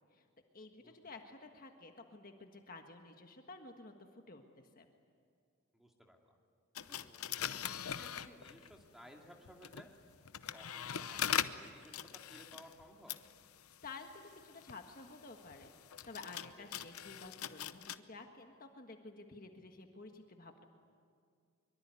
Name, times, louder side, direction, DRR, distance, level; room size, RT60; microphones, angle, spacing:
voice 1, 0.5-3.9 4.3-4.9 13.8-15.7 16.0-20.6, left 3 dB, 40° left, 4 dB, 1.5 m, -52 dB
voice 2, 5.7-6.4 6.9-9.9 10.5-13.1 16.6-16.7, equal, ahead, 1 dB, 2.4 m, -58 dB
sound 1, 6.8-8.8 9.5-18.0, left 9 dB, 85° left, 0.8 m, -42 dB
24.0 x 23.5 x 9.7 m, 2.2 s
head